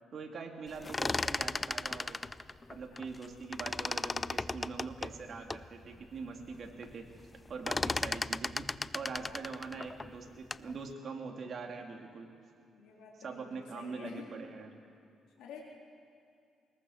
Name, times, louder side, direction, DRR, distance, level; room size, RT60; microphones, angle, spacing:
voice 1, 0.1-2.2 2.7-7.1 7.5-12.3 13.1-14.7, right 4 dB, 50° right, 2 dB, 2.6 m, -43 dB
sound 1, 0.7-3.3 3.5-5.7 6.2-6.3 6.5-6.9 7.2-10.7, left 3 dB, 20° left, 0.4 m, -35 dB
voice 2, 9.0-9.3 12.7-14.3 15.4-15.6, left 6 dB, 90° left, -2 dB, 3.0 m, -49 dB
21.0 x 20.5 x 6.5 m, 2.5 s
cardioid pair, 90°, 0 cm